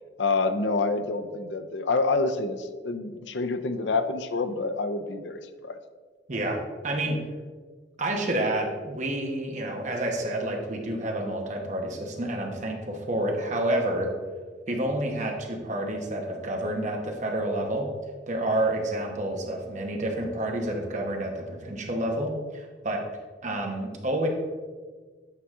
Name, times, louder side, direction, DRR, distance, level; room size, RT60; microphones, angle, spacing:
voice 1, 0.2-5.8, left 3 dB, 75° left, 9 dB, 0.5 m, -27 dB
voice 2, 6.8-7.2 8.0-14.1 14.7-17.9 18.3-23.0 23.4-24.3, right 1 dB, 40° right, 2 dB, 1.0 m, -29 dB
8.6 x 4.9 x 3.6 m, 1.5 s
head